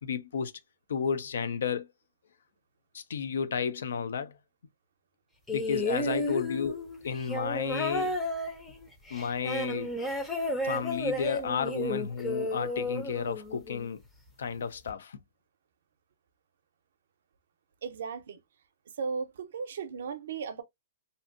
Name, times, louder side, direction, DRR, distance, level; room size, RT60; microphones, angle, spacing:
voice 1, 0.0-0.5 0.9-1.9 2.9-4.4 5.5-8.2 9.1-9.9 10.6-14.0 14.4-15.2, left 6 dB, 85° left, 0.3 m, -32 dB
sound 1, 5.5-13.9 14.9-15.0, left 1 dB, 5° left, 0.5 m, -32 dB
voice 2, 5.9-6.2 17.8-18.4 19.0-20.6, right 5 dB, 70° right, 0.5 m, -36 dB
2.6 x 2.5 x 2.4 m
hypercardioid pair, 165°, 0 cm